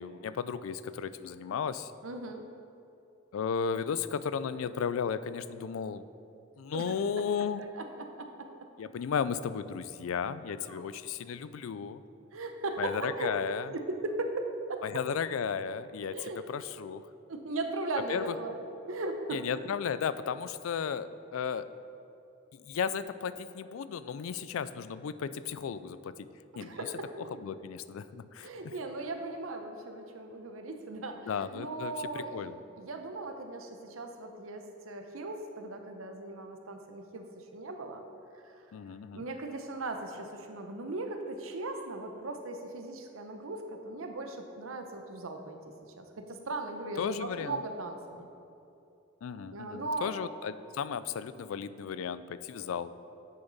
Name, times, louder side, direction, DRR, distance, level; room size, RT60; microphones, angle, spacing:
voice 1, 0.0-1.9 3.3-6.0 6.6-7.6 8.8-12.0 12.8-13.7 14.8-16.2 16.5-17.0 18.1-18.3 19.3-21.7 22.6-26.3 26.6-26.8 27.4-28.7 31.3-32.6 38.7-39.3 47.0-47.6 49.2-52.9, left 6 dB, 85° left, 14 dB, 0.4 m, -34 dB
voice 2, 2.0-2.4 6.7-7.2 7.6-8.5 10.7-10.8 12.3-14.8 16.1-16.4 17.3-18.6 18.9-19.4 26.5-27.1 28.4-32.5 32.8-38.0 38.4-38.5 39.1-45.6 46.0-48.3 49.5-50.1, right 2 dB, 90° right, 5 dB, 0.8 m, -38 dB
9.4 x 6.9 x 4.1 m, 2.8 s
head